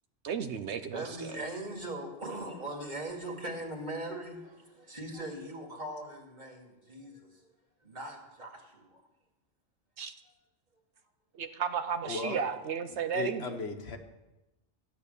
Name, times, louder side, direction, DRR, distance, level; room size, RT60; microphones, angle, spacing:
voice 1, 0.2-1.3 10.0-10.1 11.3-13.6, right 7 dB, 70° right, 9 dB, 1.0 m, -34 dB
voice 2, 0.9-7.4 7.8-9.0, right 1 dB, 40° right, 1 dB, 2.3 m, -40 dB
voice 3, 12.0-12.5 12.9-14.0, left 4 dB, 60° left, 6 dB, 1.3 m, -37 dB
14.0 x 9.1 x 6.8 m, 1.0 s
omnidirectional pair, 1.2 m